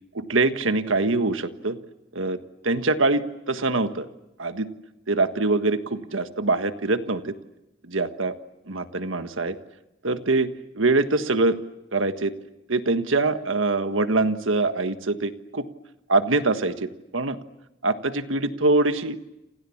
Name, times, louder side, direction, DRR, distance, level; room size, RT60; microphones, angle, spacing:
voice 1, 0.1-1.8 2.1-2.4 2.6-4.1 4.4-4.7 5.1-7.3 7.9-8.3 8.7-9.6 10.0-11.6 11.9-12.3 12.7-15.7 16.1-17.4 17.8-19.2, right 3 dB, 90° right, 10 dB, 1.5 m, -24 dB
29.5 x 27.5 x 7.2 m, 0.95 s
head